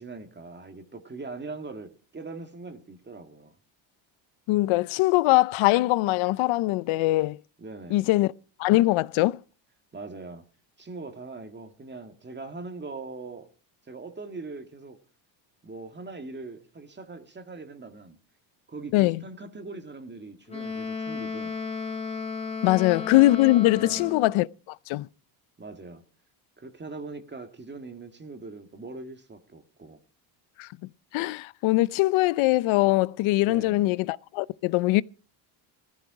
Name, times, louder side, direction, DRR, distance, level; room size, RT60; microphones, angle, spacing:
voice 1, 0.0-3.5 7.6-8.1 9.9-10.4 10.8-13.5 13.9-15.0 15.6-18.2 18.7-21.6 23.8-24.1 25.6-26.0 26.6-30.0 33.4-33.8, right 3 dB, 20° right, 2.0 m, -41 dB
voice 2, 4.5-7.4 7.9-8.3 8.6-9.4 18.9-19.2 22.6-24.5 24.9-25.1 30.6-35.0, left 18 dB, 75° left, 0.7 m, -22 dB
Wind instrument woodwind instrument, 20.5-24.4, left 5 dB, 15° left, 3.3 m, -34 dB
16.5 x 14.5 x 4.8 m
cardioid pair, 120°, 48 cm